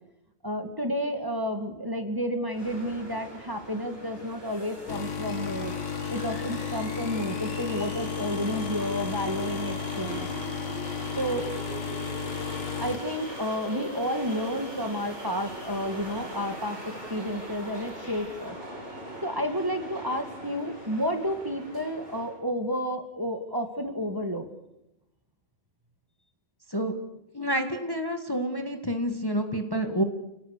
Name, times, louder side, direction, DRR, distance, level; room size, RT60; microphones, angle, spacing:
voice 1, 0.4-5.8 6.1-10.3 11.2-11.5 12.7-18.6 19.2-24.5, equal, 15° right, 5 dB, 2.2 m, -31 dB
sound 1, 2.5-22.4, right 1 dB, 55° right, 8.2 m, -41 dB
sound 2, 4.9-14.0 14.5-14.7 15.6-15.7, left 6 dB, 65° left, 1.7 m, -34 dB
voice 2, 27.3-30.0, equal, 15° left, 5 dB, 1.7 m, -28 dB
29.5 x 18.5 x 6.7 m, 0.88 s
omnidirectional pair, 1.4 m